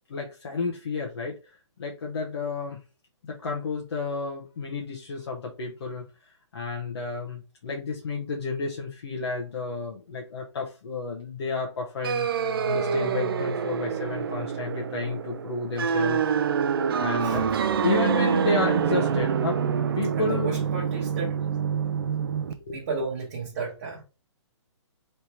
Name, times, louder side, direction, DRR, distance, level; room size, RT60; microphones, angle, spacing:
voice 1, 0.1-2.8 3.2-12.3 12.7-16.3 16.6-17.4 17.8-19.6 20.0-20.5 22.6-22.8, left 3 dB, 55° left, 1.0 m, -31 dB
sound 1, 12.0-22.5, right 7 dB, 50° right, 0.4 m, -26 dB
voice 2, 17.2-17.7 18.8-19.2 20.1-21.3 22.7-24.0, right 4 dB, 30° right, 1.0 m, -33 dB
4.5 x 3.4 x 2.8 m
hypercardioid pair, 175°, 16 cm